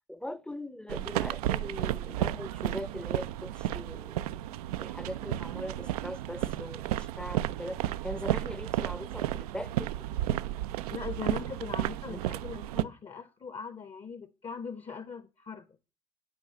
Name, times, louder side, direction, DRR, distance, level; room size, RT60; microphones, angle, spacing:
voice 1, 0.1-4.2 4.8-9.9 12.1-12.2, equal, 5° left, 0.8 m, -41 dB
sound 1, 0.9-12.8, right 13 dB, 70° right, 0.5 m, -33 dB
voice 2, 10.9-15.7, left 5 dB, 30° left, 1.0 m, -40 dB
10.5 x 5.5 x 6.9 m
figure-of-eight pair, 55°, 20 cm